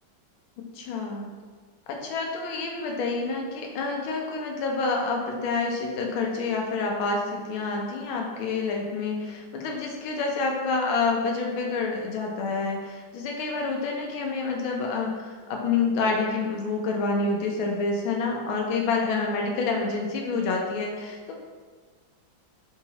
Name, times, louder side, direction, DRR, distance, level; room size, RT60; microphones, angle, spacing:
voice 1, 0.7-1.3 1.9-21.3, left 4 dB, 85° left, 0 dB, 1.5 m, -28 dB
4.9 x 2.8 x 2.8 m, 1.5 s
omnidirectional pair, 2.2 m